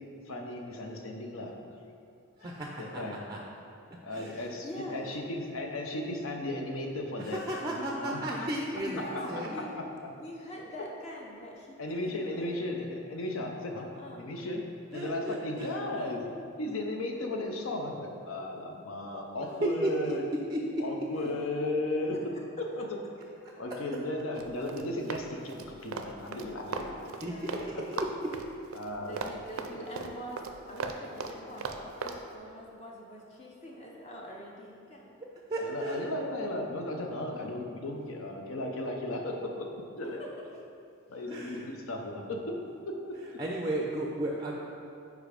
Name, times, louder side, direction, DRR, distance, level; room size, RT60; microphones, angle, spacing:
voice 1, 0.3-1.5 2.4-2.5 2.8-3.2 4.0-8.2 9.1-9.2 9.8-9.9 11.8-13.9 14.1-14.6 14.9-16.3 16.6-20.2 20.8-22.2 22.6-23.0 23.6-27.2 28.7-29.2 35.6-39.7 40.0-40.2 41.1-42.6 42.9-43.0, left 1 dB, 75° left, 2 dB, 0.7 m, -35 dB
voice 2, 2.4-3.0 3.3-3.4 4.1-4.4 7.2-9.5 14.9-16.2 19.8-20.1 20.5-20.8 27.2-27.6 35.5-36.1 41.3-41.7 43.4-44.6, right 1 dB, 20° right, -1 dB, 0.4 m, -34 dB
voice 3, 4.3-5.2 8.9-12.5 13.7-14.4 19.1-19.8 27.1-27.9 29.0-35.1 37.3-37.7 40.0-40.4, equal, 30° left, -2 dB, 0.6 m, -44 dB
Run, 24.3-27.7 27.9-32.2, right 4 dB, 85° right, 0.5 m, -37 dB
5.0 x 4.7 x 5.0 m, 2.6 s
head